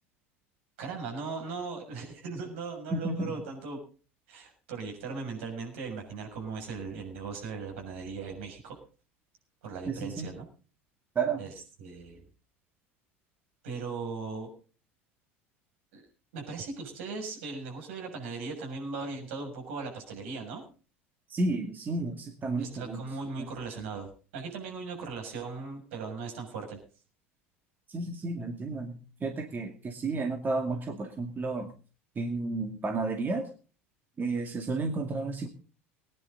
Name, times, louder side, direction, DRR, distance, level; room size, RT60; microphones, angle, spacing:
voice 1, 0.8-3.8 4.3-8.8 9.6-10.5 11.4-11.5 11.8-12.2 13.6-14.5 15.9-16.0 16.3-20.6 22.6-26.8, right 4 dB, 70° right, 2 dB, 6.8 m, -38 dB
voice 2, 2.9-3.3 9.9-10.3 11.2-11.4 21.3-23.0 27.9-31.7 32.2-33.5 34.2-35.5, right 3 dB, 25° right, 4 dB, 2.3 m, -32 dB
21.0 x 10.5 x 4.0 m, 0.36 s
hypercardioid pair, 75°, 7 cm